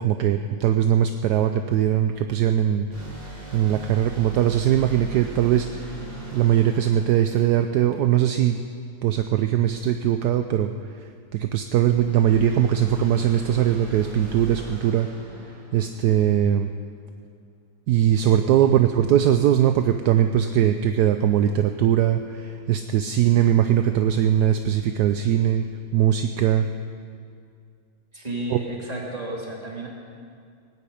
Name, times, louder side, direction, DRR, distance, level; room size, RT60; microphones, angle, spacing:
voice 1, 0.0-2.9 3.5-6.0 6.3-8.6 9.0-15.1 15.7-16.7 17.9-25.7 25.9-26.7 28.5-28.6, right 10 dB, 70° right, 7 dB, 1.1 m, -21 dB
sound 1, 2.9-8.4 11.9-16.6, right 2 dB, 40° right, 3.7 m, -40 dB
voice 2, 28.1-29.9, right 1 dB, 20° right, -3 dB, 2.9 m, -32 dB
18.0 x 9.3 x 8.5 m, 2.2 s
omnidirectional pair, 1.9 m